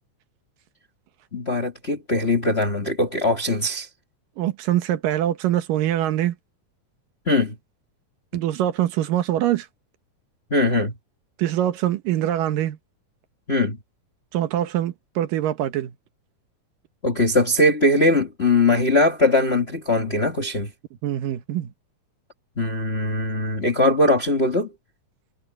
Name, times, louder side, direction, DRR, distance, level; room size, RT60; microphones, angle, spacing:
voice 1, 1.3-3.9 7.3-7.5 10.5-10.9 13.5-13.8 17.0-20.7 22.6-24.7, left 2 dB, 30° left, 1.1 m, -20 dB
voice 2, 4.4-6.3 8.3-9.7 11.4-12.8 14.3-15.9 21.0-21.7, right 12 dB, 90° right, 2.9 m, -23 dB
omnidirectional pair, 3.8 m